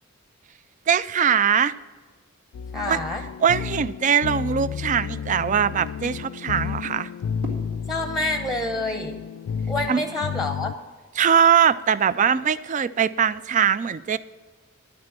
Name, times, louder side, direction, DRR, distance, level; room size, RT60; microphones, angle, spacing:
voice 1, 0.9-1.7 2.9-3.0 3.4-7.1 9.9-10.0 11.2-14.2, right 8 dB, 35° right, 17 dB, 0.3 m, -21 dB
sound 1, 2.5-10.7, left 7 dB, 90° left, 0.3 m, -32 dB
voice 2, 2.7-3.2 7.9-9.2 9.7-10.8, left 2 dB, ahead, 5 dB, 0.8 m, -27 dB
sound 2, 6.4-9.5 10.8-10.9, equal, 75° right, 2.2 m, -43 dB
11.0 x 6.2 x 7.4 m, 1.5 s
head